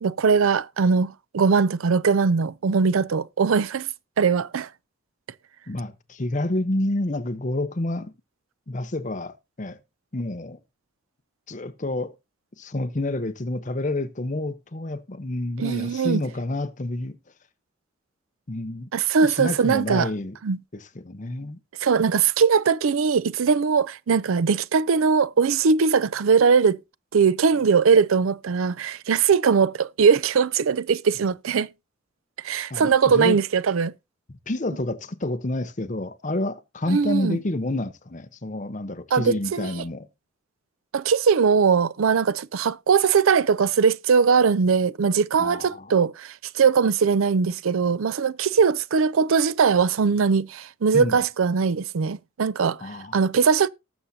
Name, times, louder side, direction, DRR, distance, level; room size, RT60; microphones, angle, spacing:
voice 1, 0.0-3.9 4.2-4.7 15.6-16.2 18.9-20.1 20.4-20.6 21.8-26.8 27.1-31.7 32.4-33.9 36.9-37.4 39.1-39.7 40.9-52.8 53.1-53.7, right 5 dB, 85° right, 0.5 m, -20 dB
voice 2, 5.7-8.1 8.7-9.8 10.1-10.6 11.5-12.1 12.6-17.2 18.5-18.9 19.2-20.4 20.7-21.6 32.7-33.4 34.3-40.1 45.4-45.9 50.9-51.2 52.8-53.2, left 1 dB, 35° left, 0.8 m, -29 dB
19.0 x 7.1 x 2.7 m
head